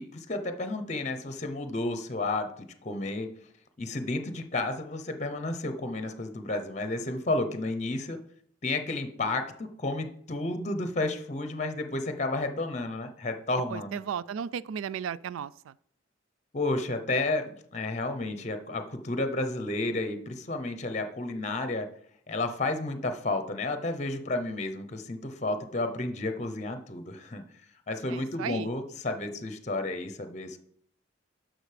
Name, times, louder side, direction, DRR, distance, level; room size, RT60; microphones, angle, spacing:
voice 1, 0.0-3.3 3.8-8.2 8.6-14.0 16.5-21.9 22.3-27.4 27.9-30.6, left 2 dB, 35° left, 0.7 m, -31 dB
voice 2, 13.7-15.7 28.1-28.7, right 8 dB, 85° right, 0.3 m, -35 dB
11.0 x 6.2 x 3.3 m
head